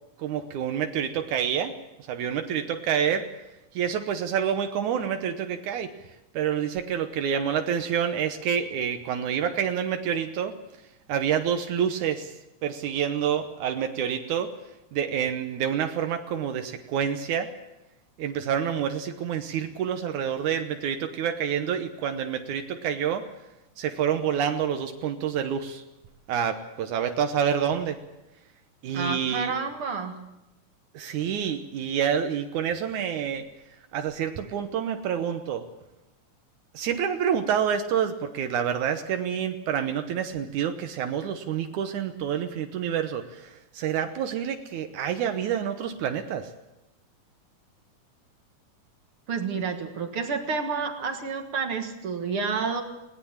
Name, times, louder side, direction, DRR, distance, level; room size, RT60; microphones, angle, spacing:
voice 1, 0.2-1.7 2.1-3.3 3.7-5.9 6.3-10.5 11.1-12.4 12.6-14.5 14.9-17.5 18.2-23.3 23.8-25.8 26.3-28.0 28.8-29.5 30.9-33.4 33.9-35.7 36.7-46.5, right 8 dB, 80° right, 7 dB, 2.5 m, -28 dB
voice 2, 28.9-30.1 49.3-52.8, right 5 dB, 50° right, 5 dB, 2.2 m, -29 dB
21.0 x 18.5 x 7.3 m, 0.95 s
omnidirectional pair, 3.4 m